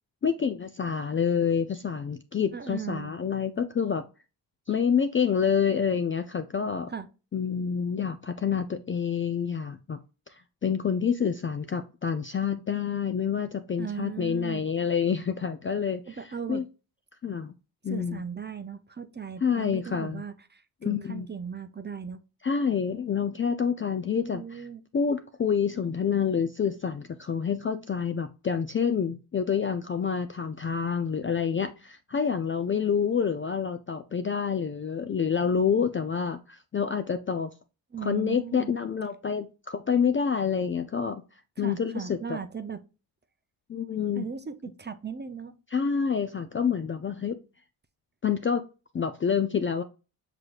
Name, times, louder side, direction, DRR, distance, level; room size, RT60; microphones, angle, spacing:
voice 1, 0.2-4.0 4.7-6.9 7.3-10.0 10.3-16.2 16.5-16.6 17.2-17.5 17.8-18.2 19.4-20.2 20.8-21.3 22.4-24.7 24.9-37.5 38.0-41.2 41.6-42.4 43.7-44.3 45.7-47.4 48.2-48.6 48.9-49.8, left 7 dB, 25° left, 0.4 m, -28 dB
voice 2, 2.5-3.1 6.9-7.1 13.8-14.6 16.1-16.6 17.9-22.2 24.2-24.8 37.9-38.7 41.6-42.8 44.1-45.5, right 7 dB, 20° right, 0.6 m, -37 dB
6.0 x 3.3 x 2.4 m
supercardioid pair, 40°, 49 cm